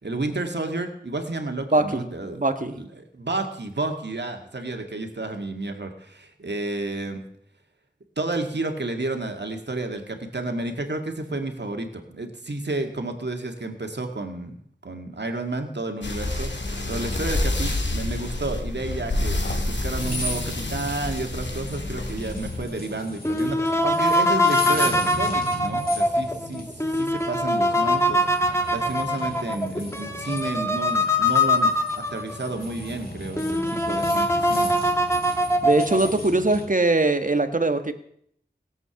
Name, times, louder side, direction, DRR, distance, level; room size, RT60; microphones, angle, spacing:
voice 1, 0.0-2.4 2.7-7.2 8.2-16.5 16.9-31.7 32.1-34.7, right 2 dB, 70° right, 4 dB, 2.0 m, -31 dB
voice 2, 1.7-2.0 2.3-2.8 35.6-37.9, right 2 dB, 45° right, 9 dB, 1.3 m, -21 dB
sound 1, 16.0-22.6, left 2 dB, 80° left, 2.2 m, -28 dB
sound 2, 20.0-36.6, left 1 dB, 55° left, 3.6 m, -37 dB
sound 3, 23.2-32.5 33.0-33.1 33.4-36.1, left 1 dB, 15° left, 1.7 m, -23 dB
17.5 x 8.1 x 7.1 m, 0.68 s
wide cardioid pair, 45°, 18 cm